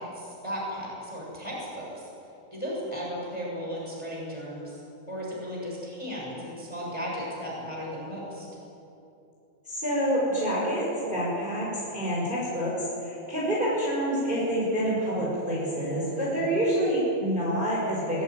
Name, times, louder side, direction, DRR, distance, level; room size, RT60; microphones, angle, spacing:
voice 1, 0.0-2.1 2.5-8.5 16.2-16.6, equal, 5° left, -4 dB, 6.3 m, -36 dB
voice 2, 9.7-12.7 13.0-18.2, equal, 10° right, -6 dB, 5.4 m, -27 dB
22.5 x 16.5 x 9.5 m, 2.8 s
omnidirectional pair, 5.7 m